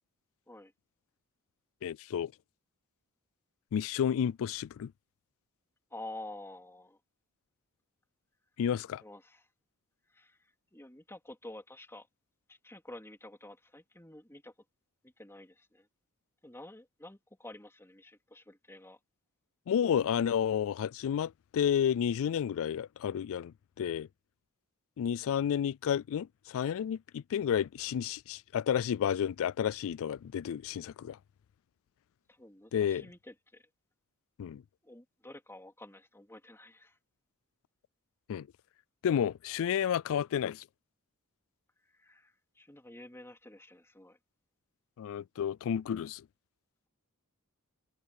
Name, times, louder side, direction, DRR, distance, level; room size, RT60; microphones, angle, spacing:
voice 1, 1.8-2.3 3.7-4.9 8.6-9.0 19.7-24.1 25.0-31.2 32.7-33.1 34.4-34.6 38.3-38.5 39.0-40.6 45.0-46.2, left 8 dB, 65° left, 0.3 m, -31 dB
voice 2, 5.9-7.0 9.0-9.4 10.1-10.4 10.7-12.1 12.5-14.5 15.0-15.9 16.4-19.0 32.3-33.6 34.8-37.0 41.9-44.2, left 1 dB, 10° left, 3.5 m, -49 dB
head